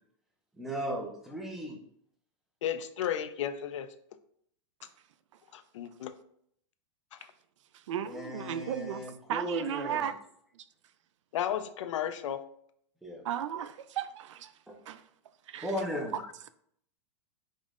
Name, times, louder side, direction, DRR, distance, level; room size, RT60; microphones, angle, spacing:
voice 1, 0.6-1.8 8.0-10.1 13.0-13.2 14.7-14.8 15.6-16.2, equal, ahead, 0.4 m, -36 dB
voice 2, 2.6-3.9 5.5-6.1 11.3-12.4, left 10 dB, 85° left, 0.5 m, -33 dB
voice 3, 7.7-9.0 9.3-10.1 13.2-14.5 14.9-15.0 15.5-15.7, right 9 dB, 85° right, 0.4 m, -35 dB
5.1 x 2.1 x 3.6 m
supercardioid pair, 170°, 15 cm